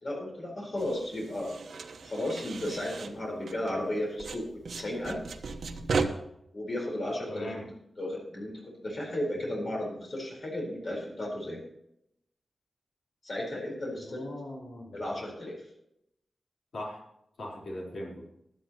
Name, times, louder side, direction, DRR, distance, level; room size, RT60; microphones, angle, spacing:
voice 1, 0.0-1.5 2.0-5.2 6.5-7.7 8.0-11.6 13.2-14.3 14.9-15.6, left 1 dB, 50° left, -2 dB, 4.4 m, -34 dB
sound 1, 0.8-3.9 4.2-6.0, right 4 dB, 85° right, 1.0 m, -36 dB
voice 2, 7.3-7.6 14.0-15.0 16.7-17.0 17.4-18.3, left 1 dB, 75° left, -3 dB, 4.0 m, -40 dB
16.0 x 11.5 x 3.0 m, 0.79 s
wide cardioid pair, 160°, 0 cm